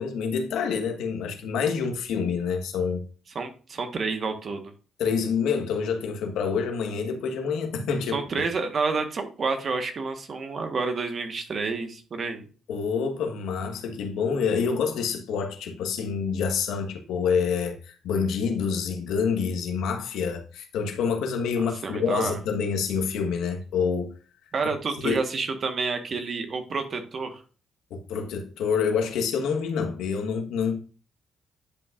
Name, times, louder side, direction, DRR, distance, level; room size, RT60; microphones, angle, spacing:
voice 1, 0.0-3.0 5.0-8.2 12.7-24.1 25.0-25.2 27.9-30.8, left 6 dB, 85° left, 1.4 m, -27 dB
voice 2, 3.3-4.7 8.1-12.5 21.8-22.4 24.5-27.4, right 4 dB, 45° right, 1.4 m, -29 dB
10.5 x 5.4 x 2.5 m
cardioid pair, 90°, 0 cm